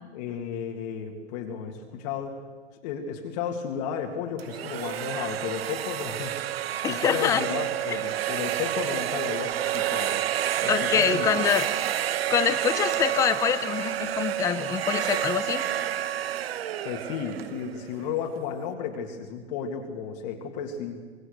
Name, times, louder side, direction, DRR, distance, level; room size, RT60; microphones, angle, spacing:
voice 1, 0.1-2.3 2.8-10.2 10.6-11.3 16.8-21.0, left 7 dB, 35° left, 2 dB, 2.1 m, -33 dB
sound 1, 4.4-18.2, right 12 dB, 55° right, 1.0 m, -29 dB
voice 2, 6.8-7.4 7.9-8.0 10.7-11.7 12.3-15.6, left 9 dB, 10° left, 12 dB, 0.6 m, -25 dB
25.0 x 20.0 x 6.6 m, 1.5 s
hypercardioid pair, 150°, 36 cm